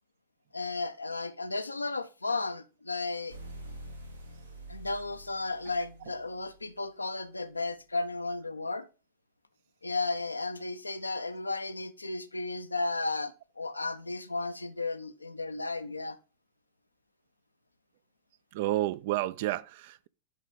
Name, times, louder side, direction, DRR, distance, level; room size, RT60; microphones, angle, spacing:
voice 1, 0.5-3.4 4.7-8.9 9.8-16.2, left 3 dB, 80° left, 0.5 m, -34 dB
sound 1, 3.3-6.9, right 2 dB, 80° right, 1.2 m, -47 dB
voice 2, 18.5-20.1, right 15 dB, 50° right, 0.3 m, -30 dB
10.0 x 4.0 x 3.8 m
figure-of-eight pair, 90°, 0 cm